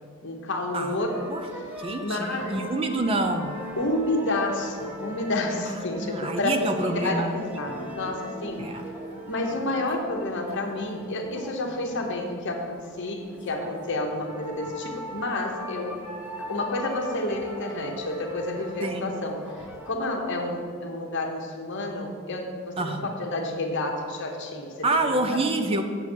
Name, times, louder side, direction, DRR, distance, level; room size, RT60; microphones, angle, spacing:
voice 1, 0.2-1.2 1.5-1.6 2.0-2.6 3.8-8.7 9.3-16.0 16.4-19.5 19.9-25.4, left 2 dB, 55° left, 2 dB, 1.0 m, -30 dB
sound 1, 1.0-19.9, left 1 dB, 10° right, 0.8 m, -40 dB
voice 2, 1.8-3.5 5.7-7.9 8.6-8.8 18.8-19.0 22.8-23.1 24.8-25.8, right 2 dB, 25° right, 7 dB, 0.4 m, -27 dB
7.9 x 6.9 x 4.5 m, 2.1 s
head